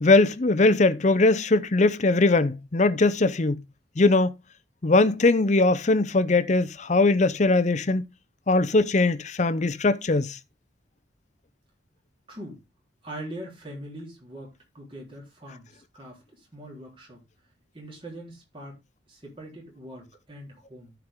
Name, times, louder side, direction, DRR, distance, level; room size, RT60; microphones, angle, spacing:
voice 1, 0.0-3.6 4.0-4.3 4.8-8.0 8.5-10.4, left 2 dB, 40° left, 0.6 m, -21 dB
voice 2, 12.3-12.6 13.0-17.2 17.7-18.8 19.1-20.9, right 1 dB, 30° right, 3.6 m, -42 dB
13.5 x 4.7 x 3.6 m
head